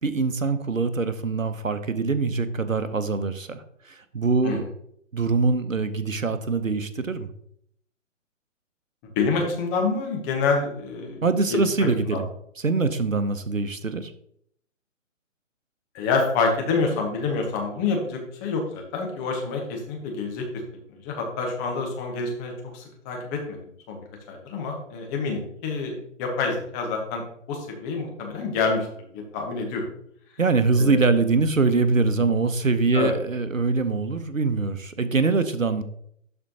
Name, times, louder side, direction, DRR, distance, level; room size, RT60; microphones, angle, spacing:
voice 1, 0.0-4.7 5.1-7.3 11.2-12.3 12.6-14.1 30.4-35.8, right 4 dB, 85° right, 11 dB, 0.9 m, -23 dB
voice 2, 9.0-11.2 11.5-11.6 12.1-12.2 15.9-20.5 20.9-23.6 23.9-24.0 24.3-27.2 27.5-28.9 29.1-29.9 30.8-31.0 32.9-33.1, left 4 dB, 15° left, 1 dB, 1.0 m, -27 dB
12.0 x 4.4 x 2.9 m, 0.68 s
figure-of-eight pair, 135°, 39 cm